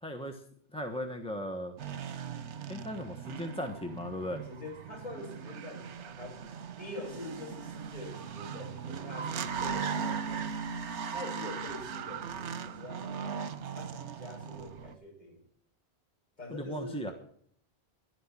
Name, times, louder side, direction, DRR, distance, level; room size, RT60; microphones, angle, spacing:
voice 1, 0.0-0.4 0.7-1.7 2.7-4.4 16.5-17.1, equal, 5° left, 4 dB, 1.1 m, -37 dB
sound 1, 1.8-14.9, right 6 dB, 90° right, 1.1 m, -38 dB
voice 2, 4.4-6.4 6.8-10.5 11.1-13.3 13.7-15.4 16.4-17.1, left 1 dB, 40° left, -4 dB, 6.1 m, -45 dB
12.0 x 11.0 x 7.3 m, 0.63 s
omnidirectional pair, 1.1 m